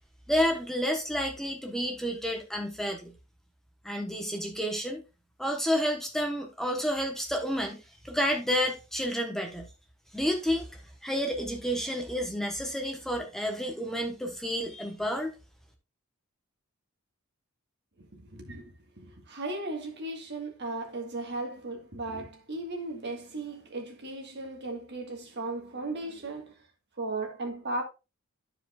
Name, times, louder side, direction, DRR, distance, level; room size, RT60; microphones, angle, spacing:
voice 1, 0.3-3.1 3.8-5.0 5.4-7.8 8.0-9.7 10.1-15.3, equal, ahead, 1.1 m, -30 dB
voice 2, 18.0-26.5 27.0-27.8, right 2 dB, 55° right, 1.7 m, -36 dB
12.5 x 4.8 x 2.4 m
head